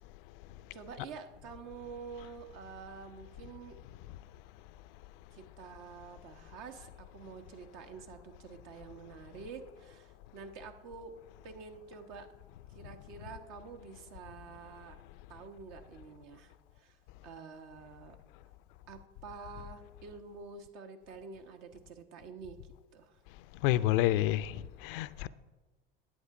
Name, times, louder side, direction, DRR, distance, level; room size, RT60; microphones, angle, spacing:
voice 1, 0.7-3.8 5.3-11.1 11.4-12.3 12.7-15.0 15.3-18.2 18.9-23.2 25.2-25.3, right 5 dB, 60° right, 1.3 m, -48 dB
voice 2, 23.6-25.3, left 15 dB, 65° left, 0.5 m, -29 dB
10.5 x 8.3 x 4.8 m
hypercardioid pair, 70°, 29 cm